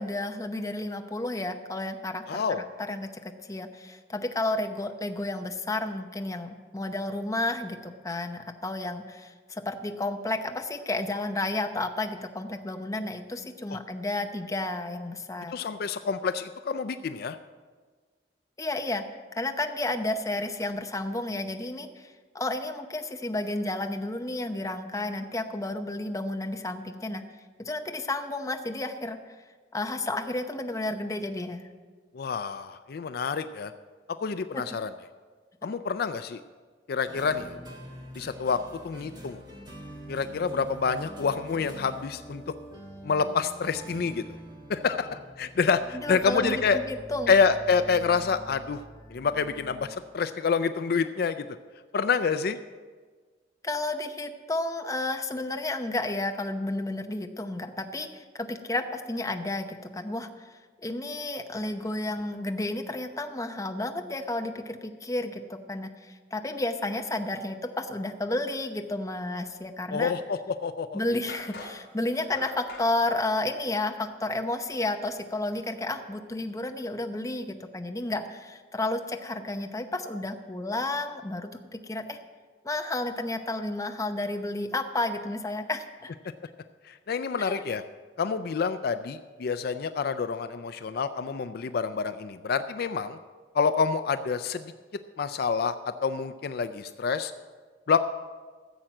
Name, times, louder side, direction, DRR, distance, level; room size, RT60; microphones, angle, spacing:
voice 1, 0.0-3.1 3.5-15.5 18.6-19.0 19.3-27.2 27.6-29.2 29.7-31.7 34.5-34.6 45.9-47.3 53.6-60.3 60.8-70.1 70.9-82.2 82.6-86.1 87.4-87.6, left 2 dB, 20° left, 6 dB, 0.8 m, -32 dB
voice 2, 2.3-2.6 15.5-17.4 32.1-33.7 34.2-34.9 35.6-36.4 36.9-37.5 38.2-39.4 40.1-42.4 43.0-44.2 44.7-46.8 47.3-48.8 49.1-49.9 50.1-51.4 51.9-52.6 69.9-71.0 86.9-87.8 88.2-93.2 93.5-94.7 95.2-97.3 97.9-98.0, left 5 dB, 60° left, 11 dB, 0.4 m, -27 dB
sound 1, 37.1-49.9, right 1 dB, 25° right, 1.5 m, -45 dB
sound 2, 70.4-70.5 71.3-72.9, left 2 dB, 85° left, 3.0 m, -43 dB
14.5 x 7.7 x 6.0 m, 1.5 s
head